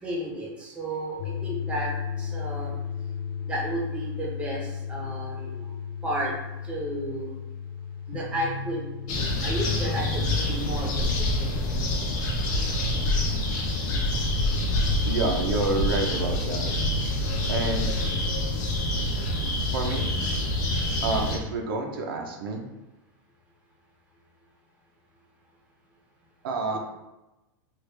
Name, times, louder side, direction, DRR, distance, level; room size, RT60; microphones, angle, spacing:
voice 1, 0.0-1.9 2.2-2.7 3.5-5.7 6.0-6.3 6.6-7.3 8.1-11.7 26.7-26.8, right 1 dB, 10° right, -3 dB, 0.7 m, -33 dB
sound 1, 1.2-12.0, left 7 dB, 90° left, 0.4 m, -35 dB
sound 2, 9.1-21.4, left 1 dB, 55° left, 0.8 m, -26 dB
voice 2, 15.0-16.7 17.5-17.9 19.7-20.1 21.0-22.6 26.4-26.8, right 3 dB, 80° right, 1 dB, 0.6 m, -28 dB
3.2 x 2.3 x 3.2 m, 0.99 s
supercardioid pair, 145°, 12 cm